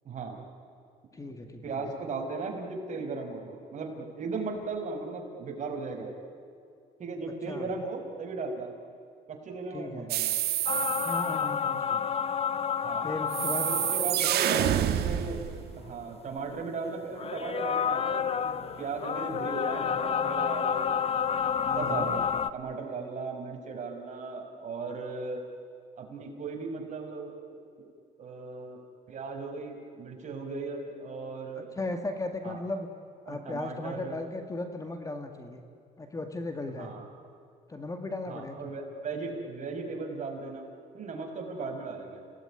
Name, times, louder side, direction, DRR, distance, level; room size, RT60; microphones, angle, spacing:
voice 1, 0.0-0.4 1.6-6.1 7.0-8.7 9.3-10.3 12.8-13.1 13.6-15.4 15.8-18.5 18.8-21.0 21.8-22.2 22.5-25.4 26.0-27.3 27.8-27.9 28.2-28.8 29.1-31.7 32.4-32.6 33.3-34.1 36.8-37.1 38.3-40.7 40.9-42.2, right 4 dB, 45° right, 2 dB, 5.4 m, -37 dB
voice 2, 1.1-1.9 7.5-7.7 9.7-10.1 11.0-12.0 13.0-13.7 14.0-14.9 21.6-22.1 31.8-32.9 33.3-35.6 36.0-36.9 37.7-38.7, left 2 dB, 20° left, 6 dB, 2.1 m, -37 dB
sound 1, 10.1-11.3 13.3-15.7, right 11 dB, 70° right, 1.6 m, -28 dB
sound 2, 10.7-14.7 15.2-15.3 17.2-22.5, left 7 dB, 35° left, 0.9 m, -30 dB
29.5 x 18.0 x 10.0 m, 2.4 s
cardioid pair, 110°, 17 cm